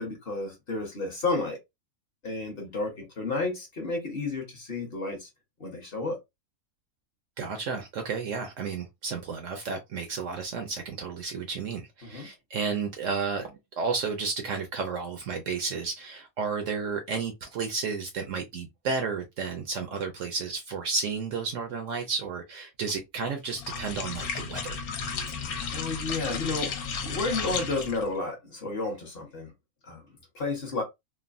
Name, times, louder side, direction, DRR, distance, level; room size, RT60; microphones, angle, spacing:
voice 1, 0.0-1.6 2.2-5.3 5.6-6.2 12.0-12.3 25.7-29.5 29.8-30.8, left 3 dB, 45° left, 1.0 m, -32 dB
voice 2, 7.4-24.8, right 5 dB, 65° right, 0.8 m, -32 dB
sound 1, 23.5-28.1, left 5 dB, 75° left, 1.1 m, -34 dB
3.2 x 2.1 x 2.4 m
omnidirectional pair, 1.6 m